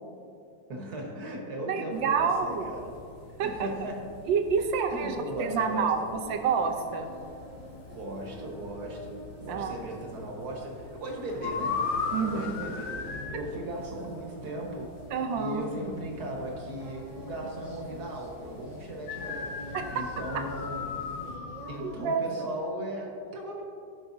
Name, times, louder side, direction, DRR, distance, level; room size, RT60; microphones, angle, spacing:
voice 1, 0.7-3.0 3.4-4.1 4.9-5.9 7.9-14.9 15.4-21.0 21.7-23.6, right 1 dB, 55° right, -1 dB, 1.9 m, -37 dB
voice 2, 1.7-2.7 3.4-3.7 4.3-7.1 9.5-9.7 12.1-12.5 15.1-15.6 19.7-19.9 21.8-22.2, right 5 dB, 80° right, 4 dB, 1.5 m, -28 dB
sound 1, 1.9-21.4, left 4 dB, 55° left, 0.9 m, -49 dB
Singing, 6.1-22.8, right 2 dB, 40° right, 0.5 m, -48 dB
sound 2, 11.4-13.4 19.1-21.8, left 5 dB, 85° left, 1.5 m, -34 dB
16.0 x 5.7 x 2.7 m, 2.5 s
omnidirectional pair, 2.0 m